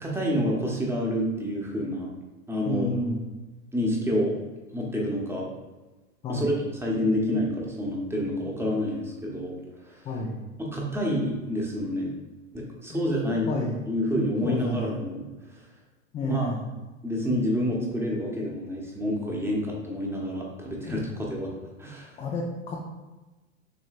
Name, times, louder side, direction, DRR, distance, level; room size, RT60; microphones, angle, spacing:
voice 1, 0.0-2.1 2.5-2.9 3.7-4.4 4.7-5.5 6.3-9.5 9.8-10.0 10.6-12.1 12.5-13.5 13.9-15.2 16.2-16.5 17.0-21.0 21.3-21.5 21.8-22.2, equal, 5° right, -2 dB, 0.9 m, -28 dB
voice 2, 2.7-3.2 6.2-6.5 10.0-10.4 12.9-13.1 13.5-13.8 14.4-15.0 16.1-16.7 20.8-21.0 22.2-22.8, left 2 dB, 15° left, -2 dB, 0.4 m, -30 dB
6.3 x 3.1 x 2.4 m, 1.2 s
hypercardioid pair, 105°, 39 cm